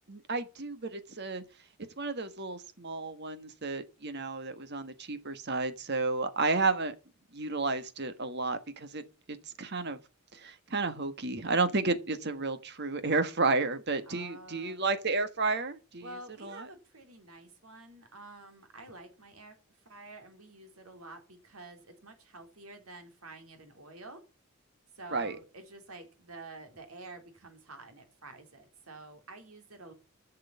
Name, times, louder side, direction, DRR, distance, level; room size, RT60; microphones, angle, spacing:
voice 1, 0.1-1.4 2.0-6.9 7.3-9.0 9.6-10.0 10.3-16.1 16.4-16.7 25.1-25.4, right 3 dB, 50° right, 1.5 m, -32 dB
voice 2, 14.1-14.9 16.0-19.6 19.9-24.2 25.0-29.9, right 2 dB, 85° right, 3.7 m, -49 dB
11.5 x 6.6 x 8.6 m
head